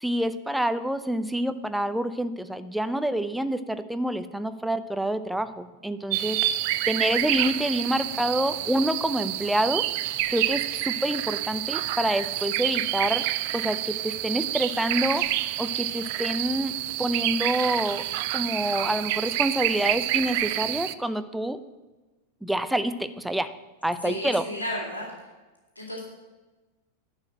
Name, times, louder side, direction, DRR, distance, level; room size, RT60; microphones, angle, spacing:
voice 1, 0.0-6.4 6.9-9.9 10.3-13.3 13.5-15.3 15.6-18.0 18.3-21.6 22.4-23.5 23.8-24.5, right 1 dB, 5° right, 11 dB, 0.6 m, -27 dB
sound 1, 6.1-20.9, right 15 dB, 50° right, 0.4 m, -28 dB
voice 2, 12.5-12.9 24.0-25.1 25.8-26.0, left 1 dB, 80° left, -1 dB, 2.3 m, -34 dB
11.0 x 5.0 x 7.5 m, 1.2 s
figure-of-eight pair, 90°, 0 cm